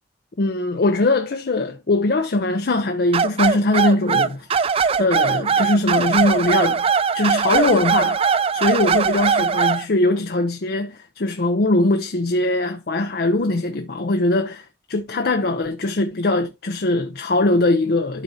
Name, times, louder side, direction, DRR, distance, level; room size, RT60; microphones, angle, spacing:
voice 1, 0.4-4.6 5.0-6.8 7.1-8.2 8.5-18.2, left 2 dB, 60° left, 0.6 m, -21 dB
sound 1, 3.1-9.8, right 6 dB, 35° right, 0.4 m, -20 dB
12.0 x 4.2 x 2.7 m
head